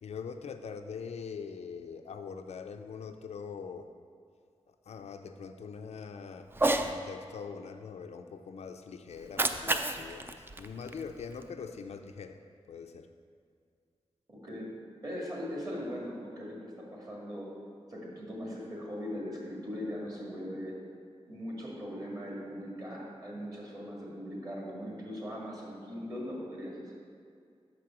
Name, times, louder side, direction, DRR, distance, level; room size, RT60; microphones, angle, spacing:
voice 1, 0.0-3.9 4.7-6.5 6.7-13.1, left 6 dB, 85° left, 7 dB, 0.4 m, -43 dB
Cat, 6.5-6.9 9.1-11.5, right 2 dB, 20° right, 0.3 m, -31 dB
voice 2, 14.3-14.7 15.0-17.5 17.9-20.7 21.3-26.9, equal, 35° right, -4 dB, 1.9 m, -40 dB
6.4 x 4.8 x 6.0 m, 2.3 s
wide cardioid pair, 115°, 11 cm